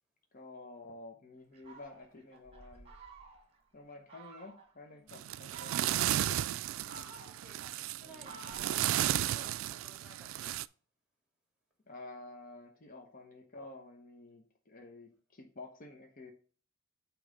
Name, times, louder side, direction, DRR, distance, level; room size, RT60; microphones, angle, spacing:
voice 1, 0.3-2.9 3.7-6.4 8.0-8.4 11.9-16.3, left 2 dB, 45° left, 0.9 m, -51 dB
Fowl, 1.5-3.6 4.1-4.7 5.3-6.2 6.7-9.4, right 3 dB, 30° right, 1.5 m, -53 dB
voice 2, 4.9-5.3 6.8-7.6 8.0-10.6, right 1 dB, 5° right, 2.4 m, -57 dB
sound 1, 5.1-10.7, right 12 dB, 80° right, 0.3 m, -34 dB
8.3 x 3.2 x 5.2 m
head